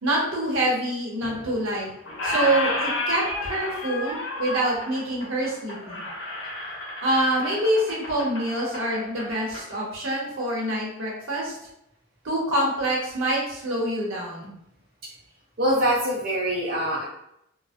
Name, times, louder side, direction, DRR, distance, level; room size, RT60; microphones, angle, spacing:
voice 1, 0.0-1.9 2.2-6.0 7.0-11.5 12.2-14.5, right 1 dB, 75° right, -3 dB, 0.8 m, -26 dB
Squeak, 1.2-1.8 2.0-9.7, left 1 dB, 65° left, 0.6 m, -31 dB
voice 2, 15.6-17.0, right 1 dB, 45° right, -7 dB, 0.5 m, -24 dB
2.5 x 2.0 x 2.4 m, 0.80 s
head